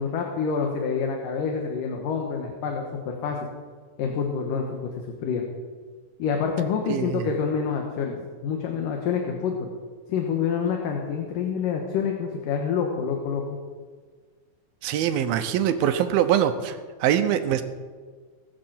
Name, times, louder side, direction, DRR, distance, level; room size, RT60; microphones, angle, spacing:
voice 1, 0.0-3.5 4.0-5.4 6.2-9.7 10.1-13.6, left 6 dB, 70° left, 2 dB, 2.6 m, -27 dB
voice 2, 6.9-7.3 14.8-17.6, right 10 dB, 80° right, 9 dB, 2.6 m, -23 dB
18.0 x 7.9 x 7.3 m, 1.5 s
omnidirectional pair, 4.4 m